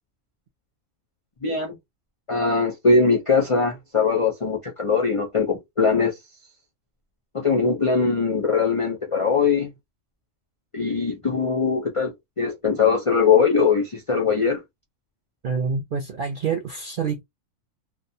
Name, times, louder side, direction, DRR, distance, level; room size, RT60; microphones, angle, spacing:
voice 1, 1.4-1.8 2.3-6.2 7.3-9.7 10.7-14.6, left 5 dB, 55° left, 0.3 m, -21 dB
voice 2, 15.4-17.2, right 5 dB, 65° right, 0.5 m, -27 dB
2.4 x 2.1 x 2.6 m
omnidirectional pair, 1.4 m